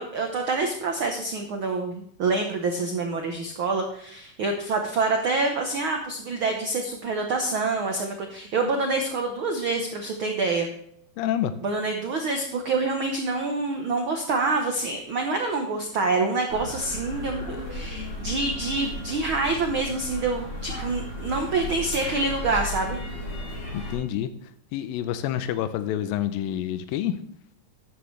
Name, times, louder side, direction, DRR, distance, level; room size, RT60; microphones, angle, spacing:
voice 1, 0.0-10.7 11.6-23.0, right 3 dB, 75° right, 4 dB, 1.1 m, -26 dB
voice 2, 11.2-11.5 23.7-27.2, left 11 dB, 90° left, 11 dB, 2.4 m, -28 dB
sound 1, 16.5-24.0, left 1 dB, 40° left, 5.0 m, -35 dB
13.0 x 9.8 x 3.3 m, 0.70 s
omnidirectional pair, 4.0 m